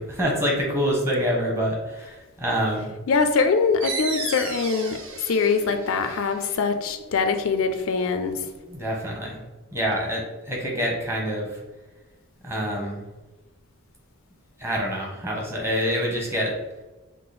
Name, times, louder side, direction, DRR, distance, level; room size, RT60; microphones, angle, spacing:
voice 1, 0.0-2.9 8.7-9.4 9.7-11.6 12.4-13.0 14.6-16.5, equal, 10° right, -2 dB, 0.9 m, -26 dB
voice 2, 3.1-5.0 5.3-8.4, left 5 dB, 65° left, 8 dB, 0.4 m, -23 dB
sound 1, 3.8-9.1, right 4 dB, 65° right, 0.7 m, -37 dB
5.5 x 2.0 x 4.0 m, 1.1 s
head